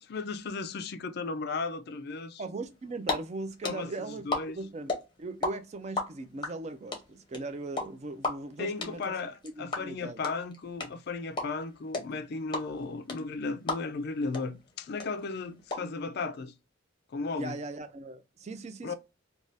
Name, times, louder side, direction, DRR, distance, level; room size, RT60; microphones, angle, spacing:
voice 1, 0.0-2.4 3.6-4.6 8.6-16.5 17.1-17.6 18.8-18.9, left 4 dB, 50° left, 0.4 m, -35 dB
voice 2, 2.4-4.3 4.5-4.9 5.2-9.0 9.6-10.2 17.4-18.9, right 3 dB, 35° right, 0.4 m, -39 dB
sound 1, 2.7-3.1 3.4-5.5 5.8-14.1 14.3-14.4 14.7-15.8, left 3 dB, 25° left, 0.7 m, -32 dB
2.6 x 2.3 x 3.1 m
head